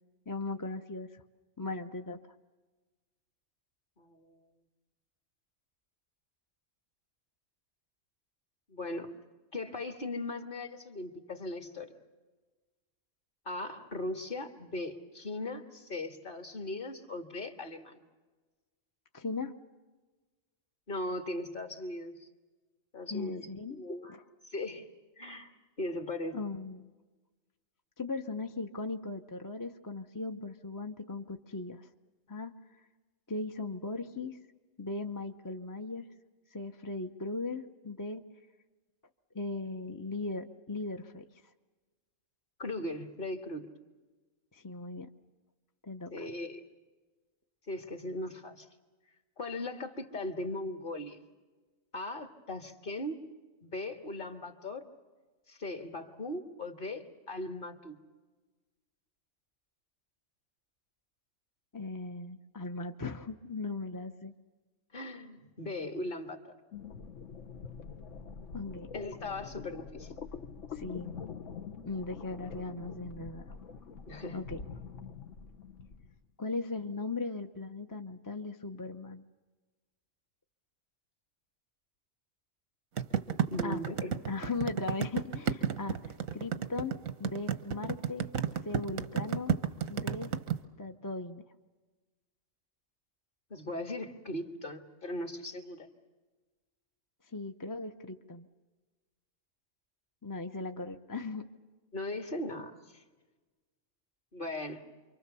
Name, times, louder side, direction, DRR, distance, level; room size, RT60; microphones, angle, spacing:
voice 1, 0.3-1.2 1.6-2.2 19.1-19.5 23.1-23.8 26.3-26.9 28.0-31.9 32.3-32.5 33.3-34.4 34.8-36.1 36.5-38.2 39.3-41.2 44.5-45.1 45.8-46.1 61.7-64.3 68.5-68.9 70.7-71.1 71.8-73.5 74.3-74.6 76.4-79.2 83.6-83.8 84.3-88.3 88.6-89.6 89.9-90.3 90.8-91.4 97.3-98.5 100.2-101.4, left 3 dB, 20° left, 5 dB, 0.7 m, -38 dB
voice 2, 4.0-4.4 8.7-9.2 9.5-11.9 13.5-18.0 20.9-22.3 22.9-24.2 24.4-25.5 25.8-26.4 42.6-43.7 46.1-46.6 47.7-48.7 49.4-51.2 51.9-53.2 53.6-54.9 55.5-58.0 64.9-66.4 68.9-70.1 74.1-74.4 83.1-84.2 93.5-95.9 101.9-103.0 104.3-104.9, left 1 dB, 40° left, 6 dB, 2.0 m, -39 dB
sound 1, 66.7-76.1, left 6 dB, 70° left, 1.5 m, -45 dB
sound 2, 83.0-90.5, right 8 dB, 85° right, 1.4 m, -31 dB
28.5 x 24.0 x 6.9 m, 1.3 s
omnidirectional pair, 1.4 m